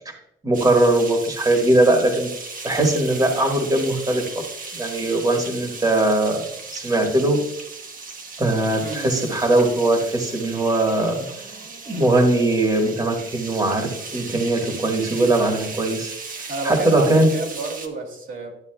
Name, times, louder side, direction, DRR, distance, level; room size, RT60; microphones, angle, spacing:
voice 1, 0.4-2.3 2.6-4.2 4.7-6.4 6.7-7.4 8.4-11.2 11.9-16.1 16.6-17.3, right 2 dB, 20° right, 2 dB, 1.5 m, -20 dB
sound 1, 0.5-17.9, right 4 dB, 45° right, 0.9 m, -36 dB
voice 2, 8.8-9.3 16.5-18.5, right 3 dB, 75° right, 0 dB, 2.1 m, -30 dB
11.5 x 6.9 x 2.3 m, 0.77 s
cardioid pair, 90°, 20 cm